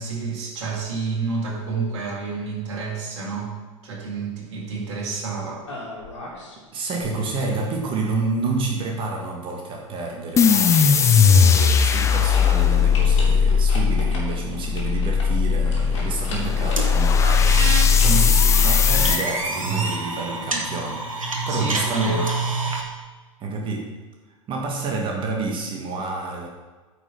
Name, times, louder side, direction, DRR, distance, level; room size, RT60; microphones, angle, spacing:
voice 1, 0.0-3.5 3.8-5.6 18.0-18.3 21.5-22.3, right 4 dB, 55° right, -2 dB, 2.5 m, -29 dB
sound 1, 5.7-6.6 6.9-8.2 10.4-12.1 12.3-12.5 12.9-16.9 17.2-18.7, left 2 dB, 60° left, 2.8 m, -38 dB
voice 2, 6.7-22.2 23.4-23.9 24.5-26.5, right 3 dB, 30° right, 0 dB, 1.7 m, -29 dB
sound 2, 10.4-19.2, left 6 dB, 15° left, 0.5 m, -18 dB
sound 3, 16.8-22.8, right 3 dB, 80° right, 1.2 m, -27 dB
9.2 x 5.4 x 5.4 m, 1.3 s
figure-of-eight pair, 85°, 17 cm